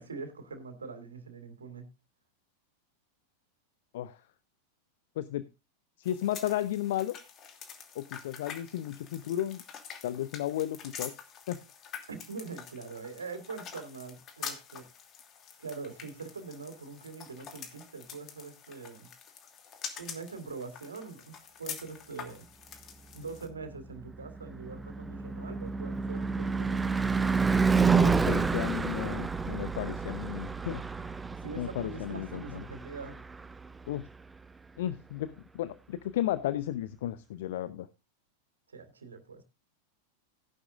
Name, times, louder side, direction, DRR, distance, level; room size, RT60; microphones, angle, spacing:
voice 1, 0.0-1.9 12.1-14.9 15.6-19.1 20.0-22.5 23.1-27.4 31.3-33.2 38.7-39.4, right 4 dB, 70° right, 3.0 m, -43 dB
voice 2, 6.0-7.2 7.9-9.6 10.0-11.1 11.5-11.6 27.9-30.8 31.6-32.6 33.9-34.0 34.8-37.9, left 12 dB, 55° left, 0.8 m, -34 dB
sound 1, 6.0-23.5, left 7 dB, 30° left, 2.7 m, -46 dB
Car passing by / Truck / Engine, 23.8-34.0, right 5 dB, 10° right, 0.7 m, -29 dB
16.0 x 11.0 x 2.5 m
figure-of-eight pair, 90°, 0 cm